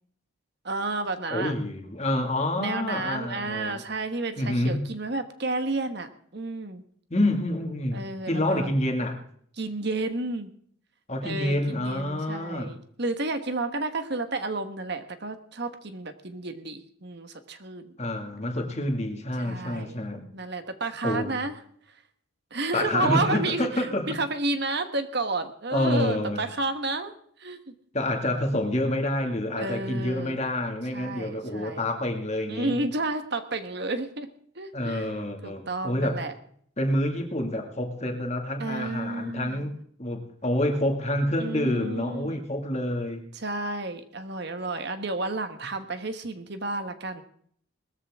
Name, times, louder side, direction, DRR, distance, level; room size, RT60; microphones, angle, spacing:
voice 1, 0.6-1.5 2.6-6.8 7.9-8.7 9.6-10.5 11.2-17.9 19.4-20.0 20.3-21.5 22.5-27.1 27.4-27.7 29.6-30.4 30.9-31.8 32.5-34.3 34.5-35.1 35.4-36.3 38.6-39.8 41.4-42.4 43.3-47.2, right 2 dB, 50° right, 9 dB, 1.4 m, -31 dB
voice 2, 1.3-3.8 4.4-4.8 7.1-9.2 11.1-12.7 18.0-20.2 21.0-21.4 22.7-24.0 25.7-26.4 27.9-32.8 34.7-36.2 36.8-43.2, left 1 dB, 30° left, 3 dB, 2.3 m, -28 dB
20.0 x 14.0 x 3.7 m, 0.62 s
head